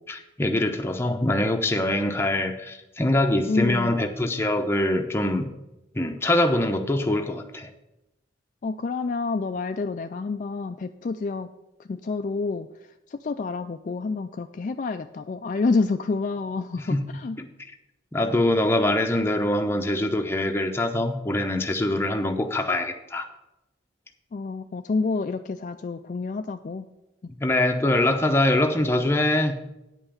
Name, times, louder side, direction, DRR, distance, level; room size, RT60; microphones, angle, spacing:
voice 1, 0.1-5.5 5.9-7.7 16.9-17.5 18.1-23.3 27.3-29.6, left 1 dB, 15° left, 5 dB, 0.7 m, -24 dB
voice 2, 3.5-3.9 8.6-11.5 11.9-12.7 13.1-17.4 24.3-26.9, left 4 dB, 40° left, 7 dB, 0.3 m, -28 dB
9.1 x 5.6 x 7.0 m, 0.93 s
head